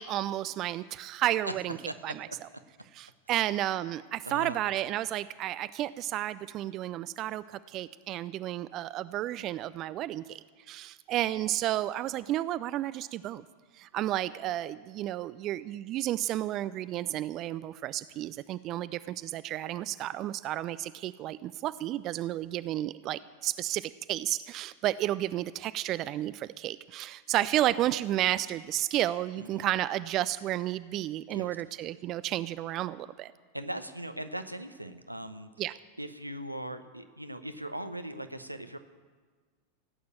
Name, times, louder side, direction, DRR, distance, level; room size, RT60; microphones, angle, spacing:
voice 1, 0.0-1.8 2.0-2.3 2.9-10.4 10.7-13.4 13.8-33.3 35.6-35.7, right 13 dB, 35° right, 16 dB, 0.4 m, -32 dB
voice 2, 1.8-2.4 4.2-4.6 29.3-29.7 31.3-31.6 33.5-35.5 36.0-38.8, right 1 dB, 85° right, 9 dB, 0.9 m, -39 dB
16.0 x 8.5 x 8.8 m, 1.5 s
figure-of-eight pair, 90°, 0 cm